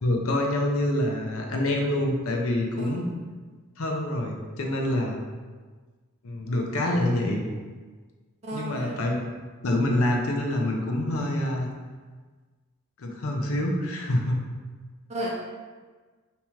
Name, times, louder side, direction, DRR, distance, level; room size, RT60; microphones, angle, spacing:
voice 1, 0.0-3.1 3.8-5.2 6.2-7.4 8.5-9.2 9.6-11.7 13.0-14.4, left 1 dB, 80° left, 1 dB, 0.6 m, -26 dB
voice 2, 2.8-3.1 8.4-9.0 15.1-15.3, right 1 dB, 30° right, -4 dB, 0.6 m, -34 dB
3.0 x 2.9 x 3.5 m, 1.4 s
head